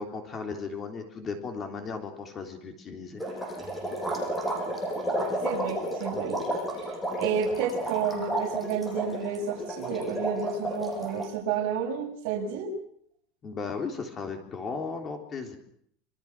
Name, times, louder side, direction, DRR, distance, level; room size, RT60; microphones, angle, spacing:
voice 1, 0.0-3.2 13.4-15.6, left 4 dB, 20° left, 4 dB, 3.6 m, -36 dB
sound 1, 3.2-11.3, right 1 dB, 5° left, 7.9 m, -32 dB
voice 2, 5.4-6.4 6.7-12.7, right 6 dB, 60° right, -2 dB, 7.3 m, -31 dB
27.5 x 26.0 x 6.2 m, 0.66 s
supercardioid pair, 170°, 0 cm